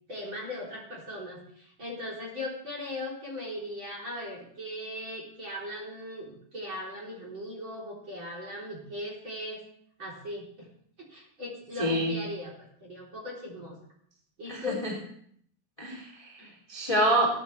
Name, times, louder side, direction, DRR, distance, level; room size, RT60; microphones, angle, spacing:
voice 1, 0.1-9.6 10.0-10.7 11.0-12.5 12.8-13.8 14.4-14.8 16.4-16.5, left 1 dB, 30° right, -4 dB, 4.1 m, -38 dB
voice 2, 11.8-12.2 14.5-14.9 15.8-17.3, right 1 dB, 10° left, -3 dB, 1.9 m, -27 dB
20.0 x 10.5 x 3.4 m, 0.65 s
omnidirectional pair, 5.2 m